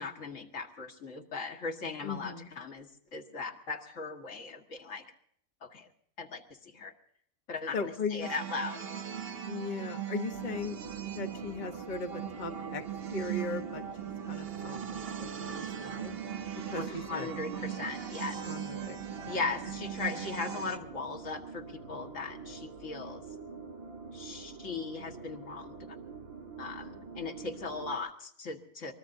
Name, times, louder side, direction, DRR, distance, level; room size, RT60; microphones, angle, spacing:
voice 1, 0.0-5.0 5.6-5.9 6.2-6.9 7.5-8.9 16.8-18.4 19.3-23.2 24.1-26.0 26.6-28.9, left 4 dB, 60° left, 3 dB, 2.0 m, -38 dB
voice 2, 2.0-2.5 7.7-8.3 9.5-10.8 11.1-12.8 13.1-16.2 16.7-17.3 18.5-19.0 19.2-19.3, left 4 dB, 35° left, 5 dB, 1.0 m, -38 dB
sound 1, 8.2-20.8, right 9 dB, 45° right, 1.0 m, -39 dB
sound 2, 10.3-28.0, right 5 dB, 70° right, 2.2 m, -46 dB
24.0 x 20.5 x 2.7 m, 0.65 s
omnidirectional pair, 1.5 m